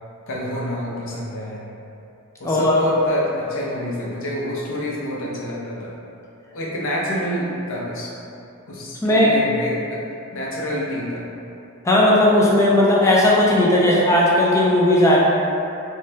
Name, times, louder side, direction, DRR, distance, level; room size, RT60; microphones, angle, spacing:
voice 1, 0.3-1.6 2.4-5.9 6.5-8.1 8.7-10.0 10.3-11.3, equal, 60° left, -4 dB, 0.6 m, -27 dB
voice 2, 2.4-2.8 9.0-9.3 11.8-15.2, left 1 dB, 15° left, -5 dB, 0.4 m, -16 dB
3.3 x 2.3 x 2.7 m, 2.7 s
head